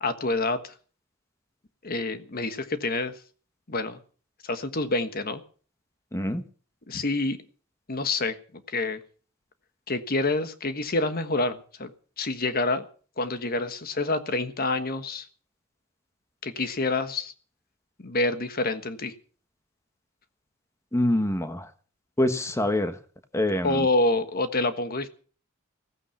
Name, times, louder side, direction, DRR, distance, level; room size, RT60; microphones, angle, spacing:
voice 1, 0.0-0.7 1.8-3.1 3.7-4.0 4.4-5.4 6.9-7.4 7.9-8.3 8.7-9.0 9.9-11.9 12.2-12.9 13.2-15.3 16.4-17.3 18.0-19.1 23.6-25.1, left 2 dB, 45° left, 10 dB, 1.4 m, -27 dB
voice 2, 6.1-6.4 20.9-21.7 22.2-22.9 23.3-23.9, left 1 dB, 15° left, 9 dB, 1.4 m, -25 dB
16.0 x 15.0 x 5.8 m, 0.42 s
head